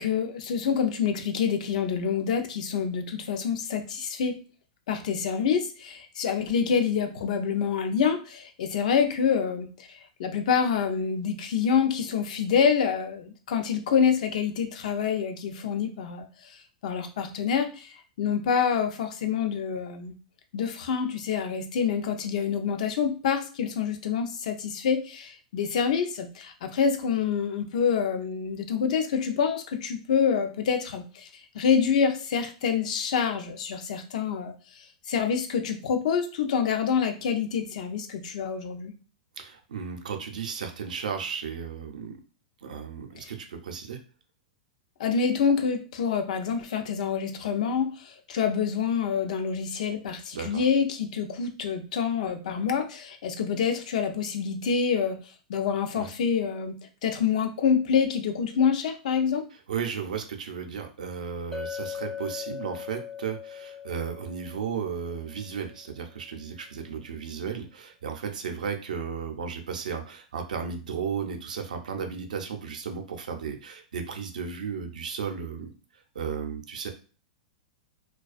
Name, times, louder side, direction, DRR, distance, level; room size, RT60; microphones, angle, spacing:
voice 1, 0.0-4.4 4.9-16.5 16.8-20.1 20.5-31.3 31.5-34.5 35.1-38.9 45.0-55.2 55.5-56.7 57.0-59.4, left 7 dB, 70° left, 7 dB, 0.5 m, -27 dB
voice 2, 39.4-42.2 42.6-44.0 50.3-50.7 56.0-56.1 59.7-75.7 76.1-76.9, right 6 dB, 85° right, 4 dB, 0.5 m, -34 dB
Chink clink, 61.5-65.7, left 7 dB, ahead, 0.4 m, -39 dB
2.3 x 2.2 x 2.4 m, 0.36 s
hypercardioid pair, 120°, 4 cm